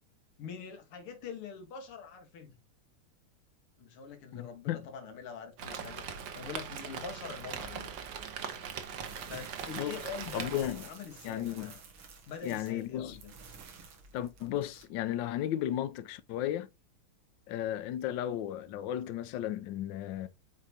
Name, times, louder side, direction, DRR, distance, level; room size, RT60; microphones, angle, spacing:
voice 1, 0.4-2.6 3.8-6.1 6.3-8.0 9.3-10.5 10.8-11.8 12.3-13.3, left 6 dB, 90° left, 2.3 m, -44 dB
voice 2, 4.3-4.9 9.8-10.0 10.3-10.8 11.2-11.7 12.4-13.2 14.1-16.7 17.5-20.3, left 12 dB, 70° left, 1.2 m, -34 dB
Rain, 5.6-10.6, right 7 dB, 65° right, 1.6 m, -41 dB
sound 1, 9.0-14.9, right 5 dB, 85° right, 2.5 m, -51 dB
7.5 x 4.7 x 2.8 m
omnidirectional pair, 2.4 m